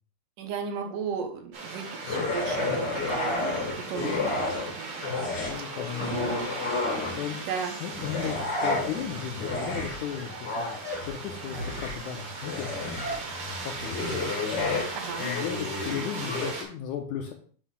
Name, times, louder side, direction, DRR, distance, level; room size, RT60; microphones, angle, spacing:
voice 1, 0.4-5.0 6.0-6.3 7.5-7.7 15.0-15.3, right 6 dB, 70° right, 4 dB, 2.3 m, -35 dB
sound 1, 1.5-16.6, right 3 dB, 55° right, 1.5 m, -38 dB
sound 2, 2.0-4.7 5.0-7.4 7.9-16.5, left 3 dB, 60° left, 1.1 m, -31 dB
voice 2, 5.2-6.2 7.2-7.4 7.8-13.2 13.6-14.1 15.2-17.3, left 9 dB, 75° left, 4 dB, 1.8 m, -36 dB
sound 3, 8.4-9.2 10.0-10.4 10.8-11.1 13.0-13.3, right 1 dB, 30° right, 0.7 m, -37 dB
8.2 x 2.8 x 5.7 m, 0.43 s
omnidirectional pair, 4.1 m